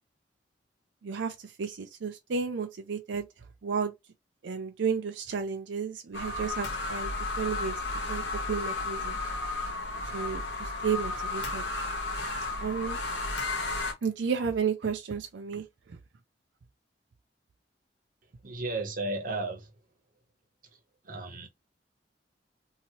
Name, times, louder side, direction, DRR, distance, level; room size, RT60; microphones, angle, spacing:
voice 1, 1.0-3.9 4.4-7.8 8.1-8.2 8.5-9.2 10.1-11.6 12.6-13.0 14.0-16.0, right 6 dB, 85° right, 0.5 m, -32 dB
sound 1, 6.1-13.9, left 2 dB, 85° left, 0.9 m, -33 dB
voice 2, 18.4-19.7 20.7-20.8 21.0-21.5, right 2 dB, 50° right, 0.9 m, -34 dB
2.9 x 2.7 x 2.8 m
head